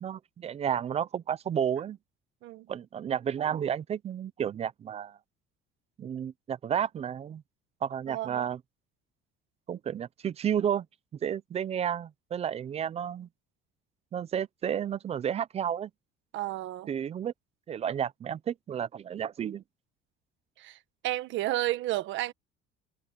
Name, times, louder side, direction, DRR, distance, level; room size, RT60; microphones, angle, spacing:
voice 1, 0.0-2.0 2.7-5.2 6.0-7.4 7.8-8.6 9.7-10.9 11.2-13.3 14.1-15.9 16.9-17.3 17.7-19.6, right 9 dB, 30° right, 0.5 m, -31 dB
voice 2, 8.1-8.5 16.3-16.9 20.6-20.8 21.0-22.3, right 16 dB, 65° right, 1.5 m, -31 dB
cardioid pair, 155°, 21 cm